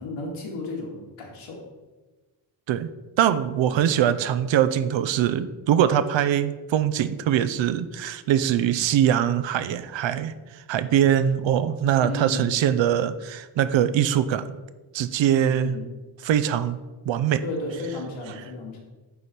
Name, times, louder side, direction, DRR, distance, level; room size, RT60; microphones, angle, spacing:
voice 1, 0.0-1.6 3.7-3.9 12.0-12.5 15.4-15.9 17.4-18.8, left 2 dB, 70° left, -2 dB, 2.1 m, -34 dB
voice 2, 3.2-10.3 10.7-14.6 14.9-15.7 16.2-16.8 17.1-17.4, right 10 dB, 65° right, 12 dB, 0.5 m, -22 dB
9.2 x 3.3 x 4.2 m, 1.2 s
cardioid pair, 85°, 50 cm